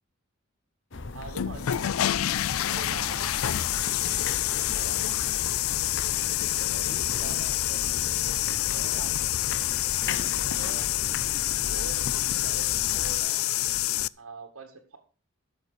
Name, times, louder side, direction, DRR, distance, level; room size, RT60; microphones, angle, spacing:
sound 1, 0.9-13.2, left 3 dB, 60° left, 0.9 m, -38 dB
voice 1, 1.1-1.9 2.6-3.7 4.4-5.9 6.5-9.2 10.0-13.5 14.2-15.0, right 3 dB, 85° right, 2 dB, 2.1 m, -45 dB
sound 2, 1.2-14.1, left 14 dB, 85° left, 0.4 m, -27 dB
12.5 x 7.3 x 5.1 m, 0.38 s
head